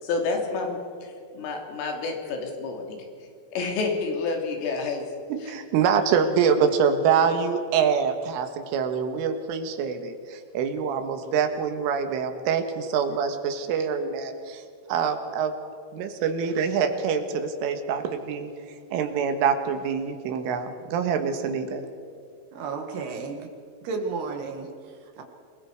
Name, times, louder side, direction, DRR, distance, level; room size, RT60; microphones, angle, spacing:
voice 1, 0.0-3.0 3.5-5.0 5.4-5.5, left 4 dB, 85° left, 2 dB, 5.4 m, -29 dB
voice 2, 5.3-14.6 14.9-15.5 15.9-18.5 18.9-21.8, right 6 dB, 85° right, 7 dB, 4.1 m, -25 dB
voice 3, 22.5-23.5 23.8-25.2, right 4 dB, 60° right, 4 dB, 3.6 m, -33 dB
28.0 x 20.5 x 4.8 m, 2.3 s
omnidirectional pair, 5.6 m